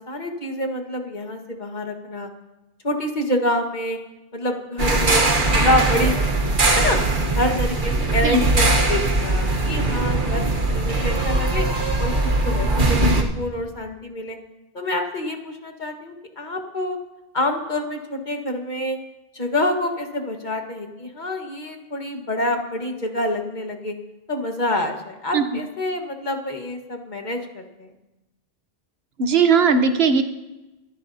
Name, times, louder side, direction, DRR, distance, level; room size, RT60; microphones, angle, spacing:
voice 1, 0.1-2.3 2.8-4.0 4.3-5.2 5.5-7.0 7.3-11.7 12.0-14.4 14.7-17.0 17.3-19.0 19.3-23.9 24.3-27.9, left 1 dB, 45° left, 3 dB, 1.7 m, -27 dB
sound 1, 4.8-13.2, right 2 dB, 55° right, 1.4 m, -20 dB
voice 2, 29.2-30.2, right 5 dB, 75° right, 9 dB, 1.2 m, -17 dB
25.5 x 12.5 x 2.8 m, 1.0 s
omnidirectional pair, 1.0 m